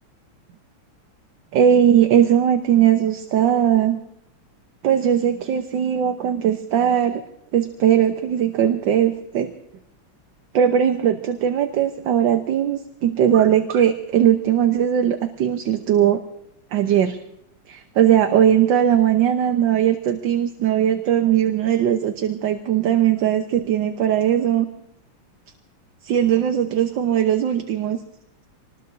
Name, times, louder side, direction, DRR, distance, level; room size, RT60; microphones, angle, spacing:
voice 1, 1.5-4.0 4.8-7.2 7.5-9.5 10.5-16.2 16.7-17.2 17.7-24.7 26.0-28.0, right 9 dB, 65° right, 6 dB, 1.5 m, -19 dB
26.5 x 20.0 x 2.6 m, 0.78 s
omnidirectional pair, 2.4 m